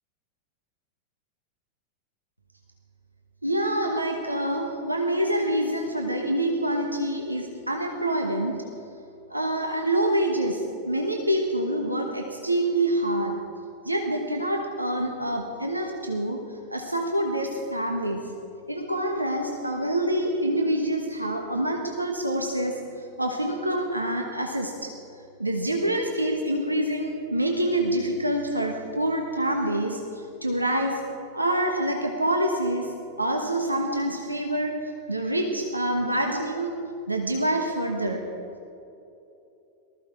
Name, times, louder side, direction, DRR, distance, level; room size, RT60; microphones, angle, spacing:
voice 1, 3.4-8.6 9.3-13.4 13.8-16.4 16.7-18.2 18.7-22.8 23.2-24.9 25.4-31.0 31.3-32.9 33.2-34.8 35.1-36.8 37.1-38.2, right 1 dB, 85° right, 3 dB, 1.2 m, -26 dB
19.0 x 14.5 x 4.8 m, 2.8 s
figure-of-eight pair, 90°, 0 cm